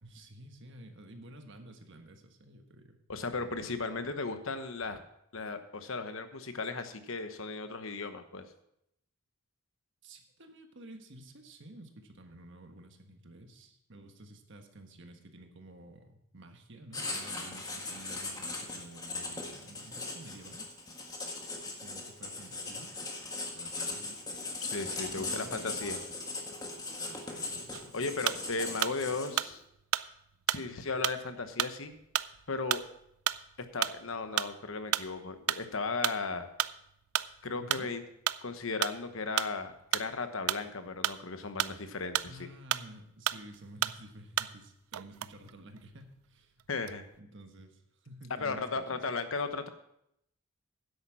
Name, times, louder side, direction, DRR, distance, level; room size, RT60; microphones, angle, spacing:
voice 1, 0.0-3.0 3.9-4.0 10.0-20.7 21.8-22.9 23.5-24.2 25.1-25.9 27.0-28.1 37.6-37.9 42.3-46.6 47.2-49.0, right 1 dB, 55° right, 6 dB, 1.4 m, -51 dB
voice 2, 3.1-5.0 5.3-8.4 24.6-26.0 27.9-29.6 30.5-31.9 32.5-32.8 33.7-36.5 37.4-38.0 38.4-42.3 46.7-47.0 48.4-49.7, left 3 dB, 65° left, 9 dB, 1.1 m, -36 dB
Writing, 16.9-29.5, left 3 dB, 15° left, 1.6 m, -39 dB
sound 1, 27.7-29.0 29.4-43.0 43.3-44.7 44.9-46.2 46.6-47.2, right 13 dB, 85° right, 0.4 m, -33 dB
10.0 x 8.4 x 6.1 m, 0.77 s
head